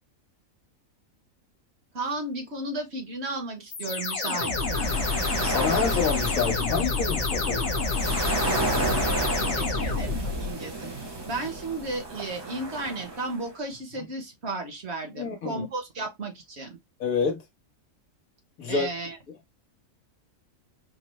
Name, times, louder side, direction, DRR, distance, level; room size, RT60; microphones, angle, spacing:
voice 1, 1.9-5.0 9.2-16.8 18.7-19.2, right 2 dB, 55° right, 1.2 m, -34 dB
sound 1, 3.7-10.5, left 4 dB, 60° left, 1.5 m, -28 dB
sound 2, 4.2-13.5, right 3 dB, 25° right, 0.8 m, -33 dB
voice 2, 5.4-7.8 13.9-14.0 15.1-15.6 17.0-17.4 18.6-18.9, left 5 dB, 90° left, 1.5 m, -28 dB
5.2 x 2.1 x 3.0 m
omnidirectional pair, 1.4 m